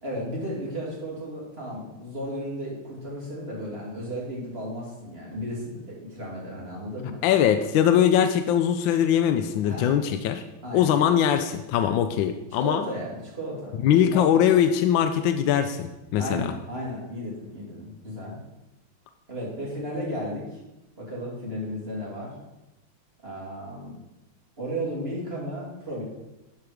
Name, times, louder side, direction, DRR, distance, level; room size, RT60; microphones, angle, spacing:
voice 1, 0.0-7.2 9.6-9.9 10.6-11.0 12.6-13.8 14.0-14.3 16.2-18.4 19.3-20.6 21.0-22.3 23.2-24.0 24.6-26.0, equal, 30° right, -4 dB, 2.6 m, -34 dB
voice 2, 7.2-10.4 10.7-12.8 13.8-16.5, left 9 dB, 75° left, 8 dB, 1.2 m, -21 dB
11.5 x 4.7 x 5.0 m, 0.98 s
omnidirectional pair, 2.4 m